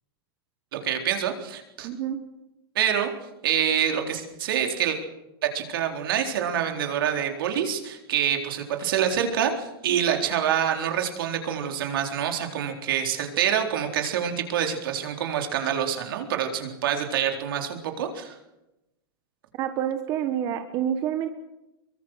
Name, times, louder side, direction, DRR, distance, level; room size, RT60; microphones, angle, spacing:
voice 1, 0.7-1.9 2.8-3.1 3.4-5.0 5.4-18.4, right 9 dB, 65° right, 4 dB, 4.0 m, -26 dB
voice 2, 1.8-2.2 19.6-21.3, right 10 dB, 30° right, 7 dB, 1.4 m, -27 dB
23.5 x 23.5 x 6.4 m, 0.94 s
supercardioid pair, 165°, 12 cm